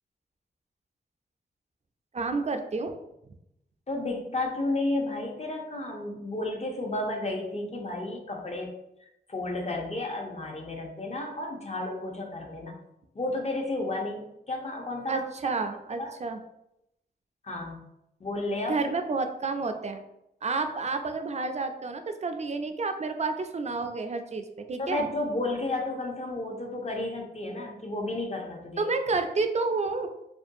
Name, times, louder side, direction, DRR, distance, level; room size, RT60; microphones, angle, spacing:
voice 1, 2.1-2.9 15.1-16.4 18.7-20.0 20.4-25.1 28.8-30.1, right 3 dB, 35° right, 7 dB, 0.3 m, -30 dB
voice 2, 3.9-8.7 9.0-12.7 13.1-15.5 16.0-16.1 17.4-17.8 18.2-18.8 24.8-28.9, left 2 dB, 35° left, 2 dB, 0.6 m, -32 dB
2.5 x 2.2 x 2.6 m, 0.83 s
cardioid pair, 45°, 19 cm